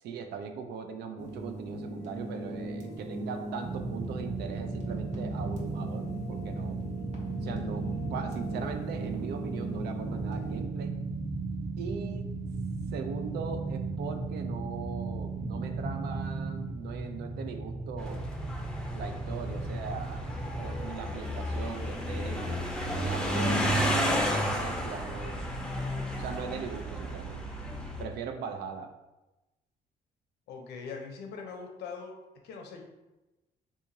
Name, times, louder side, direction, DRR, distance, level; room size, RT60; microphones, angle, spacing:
voice 1, 0.0-6.8 7.4-11.0 11.8-12.3 12.9-18.3 18.9-22.6 22.9-25.4 26.2-27.4 28.0-28.9, right 6 dB, 80° right, 6 dB, 0.4 m, -40 dB
sound 1, 1.2-10.6, equal, 45° right, 0.9 m, -40 dB
sound 2, 3.6-20.9, right 3 dB, 15° right, 0.8 m, -36 dB
sound 3, 18.0-28.0, equal, 5° left, 0.5 m, -32 dB
voice 2, 30.5-32.2 32.4-32.8, left 5 dB, 85° left, 3 dB, 0.6 m, -41 dB
3.6 x 2.8 x 2.6 m, 1.0 s
cardioid pair, 90°, 17 cm